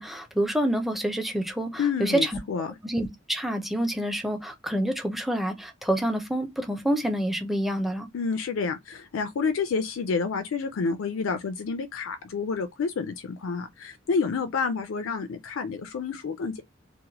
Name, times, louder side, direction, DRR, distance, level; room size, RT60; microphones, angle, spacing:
voice 1, 0.0-2.4 2.8-8.1, right 1 dB, ahead, 0.5 m, -27 dB
voice 2, 1.8-2.7 8.1-16.6, left 5 dB, 80° left, 0.4 m, -29 dB
2.9 x 2.1 x 2.7 m
head